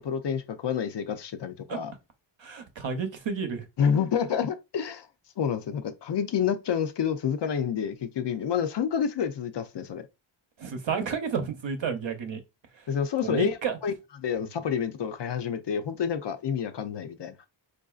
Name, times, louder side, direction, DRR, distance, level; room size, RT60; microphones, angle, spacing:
voice 1, 0.0-1.9 3.8-5.1 5.4-10.0 12.9-13.6 13.8-13.9 14.2-17.3, left 7 dB, 60° left, 0.5 m, -28 dB
voice 2, 2.4-3.6 10.6-12.4 13.2-13.8, right 6 dB, 65° right, 0.8 m, -31 dB
4.6 x 2.5 x 2.4 m
wide cardioid pair, 140°, 49 cm